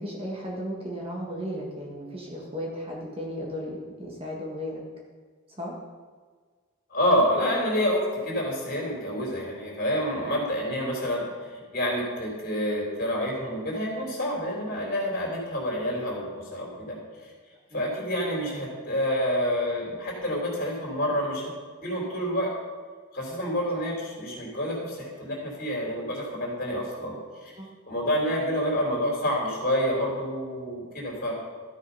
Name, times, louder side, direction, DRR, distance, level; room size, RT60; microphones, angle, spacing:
voice 1, 0.0-4.8 5.5-5.8 17.7-17.8 27.6-27.7, equal, 25° right, -2 dB, 1.6 m, -35 dB
voice 2, 6.9-17.0 17.7-21.5 21.8-22.5 23.1-27.5 27.9-31.3, equal, 40° left, -2 dB, 3.6 m, -28 dB
13.5 x 6.6 x 5.5 m, 1.5 s
head